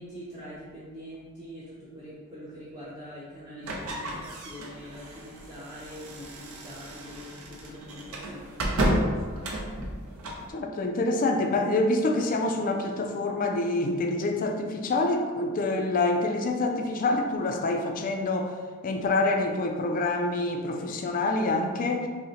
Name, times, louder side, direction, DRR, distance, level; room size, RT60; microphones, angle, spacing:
voice 1, 0.0-9.5, equal, 20° right, -11 dB, 0.6 m, -44 dB
sound 1, 3.6-10.5, right 1 dB, 75° right, 0.6 m, -32 dB
voice 2, 10.5-18.5 18.8-22.1, left 2 dB, 40° left, 3 dB, 0.3 m, -26 dB
5.3 x 2.1 x 2.8 m, 1.5 s
head